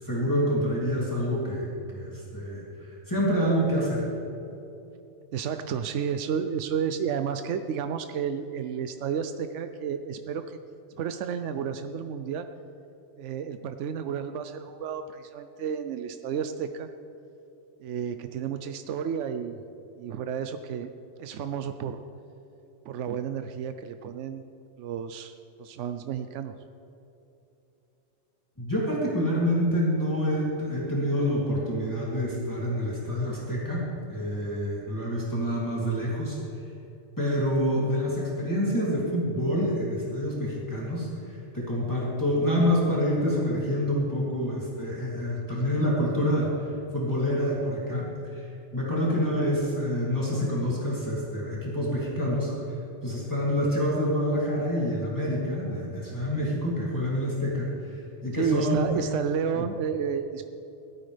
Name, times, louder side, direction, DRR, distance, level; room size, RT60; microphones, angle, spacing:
voice 1, 0.0-4.1 28.6-36.4 37.2-58.8 59.6-59.7, equal, 15° left, -6 dB, 2.8 m, -27 dB
voice 2, 5.3-10.6 11.0-12.5 13.2-16.9 17.8-19.6 20.0-20.9 21.2-22.0 22.9-24.4 24.8-26.5 45.5-45.7 58.3-60.4, right 7 dB, 85° right, 9 dB, 0.9 m, -31 dB
17.0 x 13.0 x 3.4 m, 2.9 s
omnidirectional pair, 1.2 m